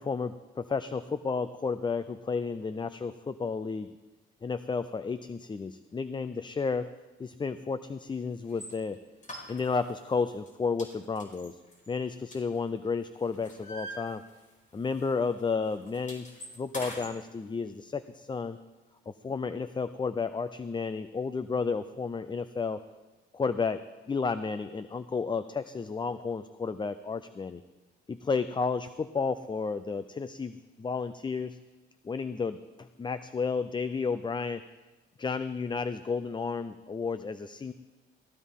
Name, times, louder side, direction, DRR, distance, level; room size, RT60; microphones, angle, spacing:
voice 1, 0.0-3.9 4.4-6.9 7.2-9.0 9.5-11.6 11.9-14.2 14.7-16.3 16.6-18.6 19.1-22.8 23.3-23.8 24.1-27.6 28.1-31.6 32.0-34.6 35.2-37.7, left 5 dB, 25° left, 12 dB, 0.5 m, -32 dB
sound 1, 8.5-8.7 9.2-10.0 10.3-10.5 10.8-12.9 13.2-14.7 14.9-15.1 15.4-17.1, equal, 40° left, 4.8 m, -44 dB
16.5 x 16.5 x 3.7 m, 1.2 s
cardioid pair, 90°, 20 cm